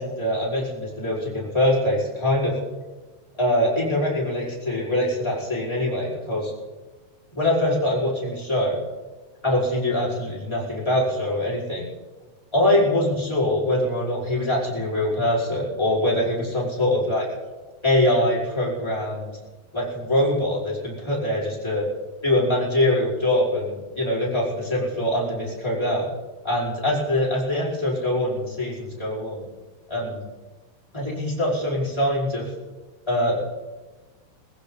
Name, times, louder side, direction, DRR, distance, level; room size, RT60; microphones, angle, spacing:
voice 1, 0.0-2.6 3.4-6.5 7.3-8.8 9.4-11.8 12.5-17.3 17.8-19.3 19.7-21.8 22.2-26.1 26.4-29.4 29.9-30.2 30.9-32.5 33.1-33.4, left 1 dB, 5° left, -7 dB, 4.7 m, -23 dB
22.0 x 15.5 x 4.1 m, 1.2 s
omnidirectional pair, 4.8 m